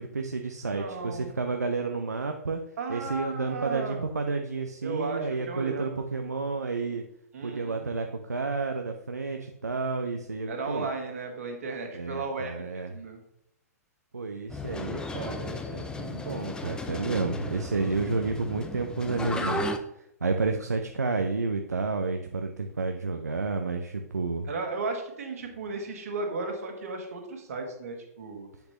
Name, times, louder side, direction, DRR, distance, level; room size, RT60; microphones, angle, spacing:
voice 1, 0.0-2.6 2.9-7.0 7.4-10.9 11.9-13.0 14.1-19.6 20.0-24.5, right 4 dB, 80° right, 4 dB, 0.6 m, -31 dB
voice 2, 0.6-1.3 2.8-4.1 4.8-6.0 7.3-7.8 10.5-13.2 24.5-28.5, right 3 dB, 65° right, 3 dB, 1.8 m, -35 dB
sound 1, 14.5-19.8, left 2 dB, 10° left, 0.5 m, -35 dB
7.9 x 6.9 x 3.0 m, 0.77 s
figure-of-eight pair, 110°, 9 cm